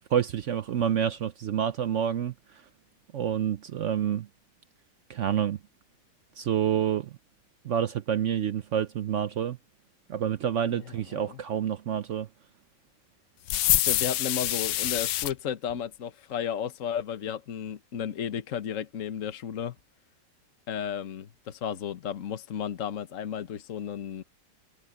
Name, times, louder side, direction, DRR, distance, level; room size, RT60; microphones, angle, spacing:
voice 1, 0.1-2.3 3.1-4.3 5.1-5.6 6.4-7.1 7.6-9.6 10.1-12.3, right 9 dB, 65° right, 0.7 m, -28 dB
voice 2, 10.7-11.4 13.8-19.8 20.7-24.2, left 8 dB, 50° left, 1.4 m, -33 dB
sound 1, 13.5-15.3, left 13 dB, 75° left, 1.3 m, -26 dB
omnidirectional pair, 1.9 m